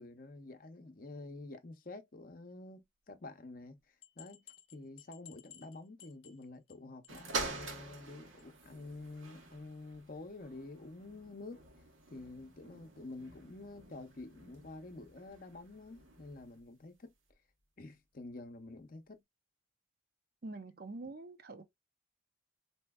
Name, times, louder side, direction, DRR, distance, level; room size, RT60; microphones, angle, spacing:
voice 1, 0.0-4.4 4.7-11.6 12.1-17.1 17.8-19.2, left 2 dB, 45° left, 0.6 m, -49 dB
sound 1, 4.0-6.8 7.0-7.3 7.6-7.7 8.0-8.1 8.4-8.5, left 11 dB, 90° left, 0.6 m, -57 dB
sound 2, 7.1-16.6 17.3-17.4, right 3 dB, 80° right, 1.0 m, -46 dB
voice 2, 20.4-21.6, right 2 dB, 50° right, 0.5 m, -45 dB
4.3 x 2.8 x 2.2 m
head